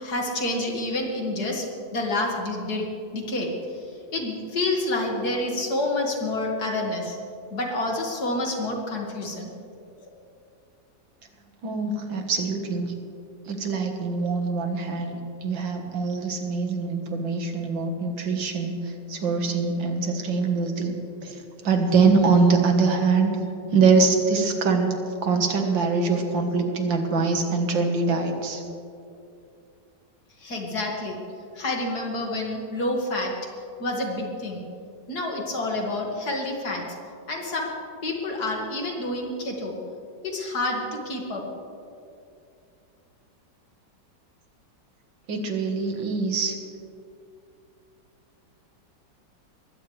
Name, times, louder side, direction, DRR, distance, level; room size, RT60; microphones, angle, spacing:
voice 1, 0.0-1.6 1.9-2.9 3.1-3.5 4.1-7.2 7.5-9.5 30.4-31.2 31.5-33.3 33.8-34.6 35.1-36.8 37.3-37.7 38.0-39.8 40.2-41.4, left 2 dB, 55° left, 0 dB, 2.6 m, -28 dB
voice 2, 11.6-12.9 13.5-21.0 21.2-21.4 21.6-23.3 23.7-24.9 25.2-28.6 45.3-46.6, right 4 dB, 85° right, 4 dB, 2.2 m, -23 dB
21.5 x 16.0 x 3.3 m, 2.5 s
omnidirectional pair, 2.0 m